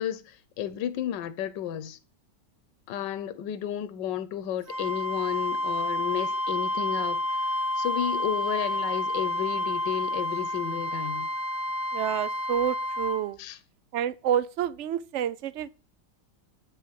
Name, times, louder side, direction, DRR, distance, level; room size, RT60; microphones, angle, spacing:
voice 1, 0.0-2.0 2.9-11.3 13.4-13.6, left 10 dB, 80° left, 1.4 m, -32 dB
Wind instrument woodwind instrument, 4.7-13.2, left 1 dB, 10° right, 1.2 m, -29 dB
voice 2, 11.9-13.4 13.9-15.7, right 10 dB, 70° right, 0.6 m, -28 dB
8.5 x 5.6 x 7.4 m
omnidirectional pair, 2.0 m